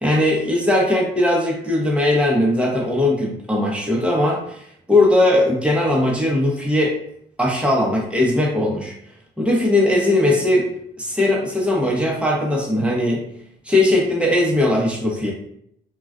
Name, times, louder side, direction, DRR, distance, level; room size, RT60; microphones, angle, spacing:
voice 1, 0.0-6.9 7.4-8.9 9.4-10.7 11.0-13.2 13.6-15.3, left 1 dB, 5° right, -2 dB, 0.7 m, -19 dB
2.4 x 2.2 x 2.3 m, 0.71 s
cardioid pair, 90°, 20 cm